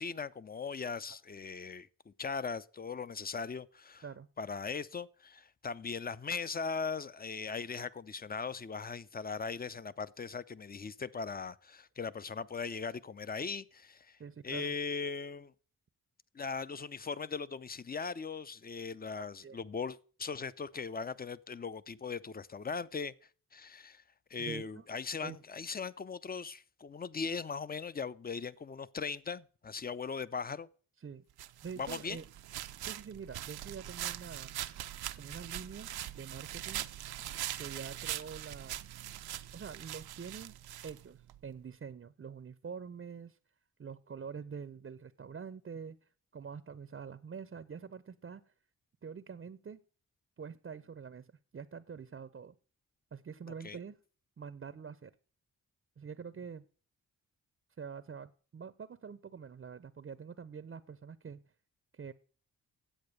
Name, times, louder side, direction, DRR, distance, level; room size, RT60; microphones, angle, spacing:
voice 1, 0.0-4.0 4.4-14.2 14.4-15.5 16.3-23.1 23.5-24.0 24.3-30.7 31.8-32.2 53.6-53.8, left 5 dB, 25° left, 0.6 m, -39 dB
voice 2, 14.2-14.7 19.2-19.6 24.4-24.8 25.2-25.4 31.0-31.2 31.6-32.2 32.8-34.5 35.2-36.9 37.6-38.8 39.5-40.6 40.8-43.4 43.8-46.0 46.3-48.4 49.0-49.8 50.4-52.5 53.1-54.0 54.4-55.1 56.0-56.7 57.8-61.4 61.9-62.1, right 6 dB, 35° right, 0.6 m, -46 dB
sound 1, 31.4-41.4, right 13 dB, 85° right, 0.6 m, -42 dB
8.8 x 7.9 x 6.4 m
cardioid pair, 60°, 37 cm